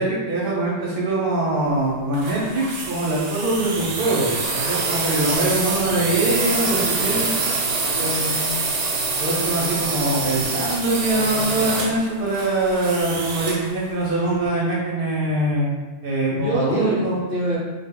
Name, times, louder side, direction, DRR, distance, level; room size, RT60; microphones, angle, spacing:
voice 1, 0.0-4.4 4.7-7.3 9.2-15.8 16.0-17.2, right 2 dB, 60° right, -5 dB, 0.7 m, -23 dB
sound 1, 2.1-13.7, right 3 dB, 85° right, 0.9 m, -25 dB
voice 2, 7.9-8.5 14.0-14.4 16.3-17.6, equal, 20° left, -9 dB, 0.5 m, -27 dB
2.1 x 2.0 x 3.5 m, 1.2 s
omnidirectional pair, 1.2 m